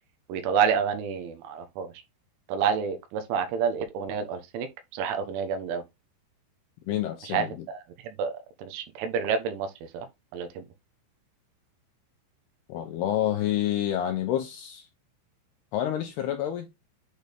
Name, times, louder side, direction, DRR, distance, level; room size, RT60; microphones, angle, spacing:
voice 1, 0.3-1.9 2.5-4.7 4.9-5.8 7.3-7.8 8.0-8.3 8.6-9.7 9.9-10.1 10.3-10.7, right 7 dB, 80° right, 3.5 m, -28 dB
voice 2, 6.9-7.7 12.7-14.9 15.7-16.7, left 11 dB, 80° left, 2.4 m, -28 dB
8.6 x 4.2 x 3.4 m
omnidirectional pair, 5.5 m